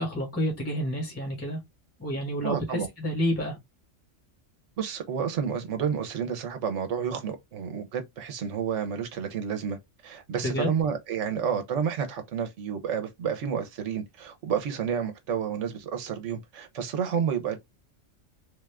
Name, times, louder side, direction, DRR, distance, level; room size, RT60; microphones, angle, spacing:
voice 1, 0.0-1.6 2.0-3.6 10.4-10.7, equal, 10° left, 1.1 m, -29 dB
voice 2, 2.4-2.9 4.8-9.8 10.0-17.6, right 7 dB, 70° right, 1.1 m, -30 dB
3.5 x 2.4 x 3.3 m
omnidirectional pair, 1.3 m